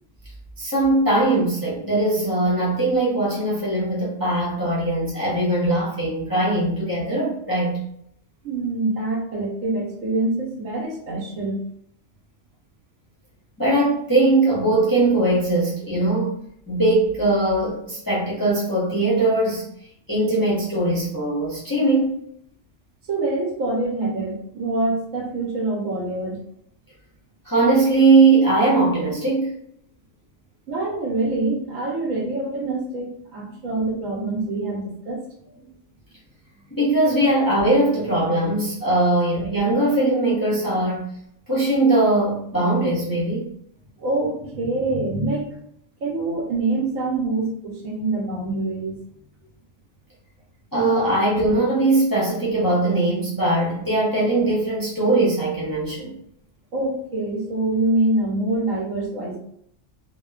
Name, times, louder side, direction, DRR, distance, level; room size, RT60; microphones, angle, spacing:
voice 1, 0.6-7.8 13.6-16.4 16.7-19.6 20.1-22.1 27.4-29.5 36.7-41.1 41.5-43.5 50.7-56.1, right 2 dB, 25° left, -7 dB, 0.5 m, -20 dB
voice 2, 8.4-11.6 23.1-26.4 30.7-35.2 44.0-45.6 46.0-49.0 56.7-59.4, right 2 dB, 85° right, 0 dB, 1.2 m, -25 dB
2.8 x 2.1 x 2.3 m, 0.69 s
omnidirectional pair, 1.3 m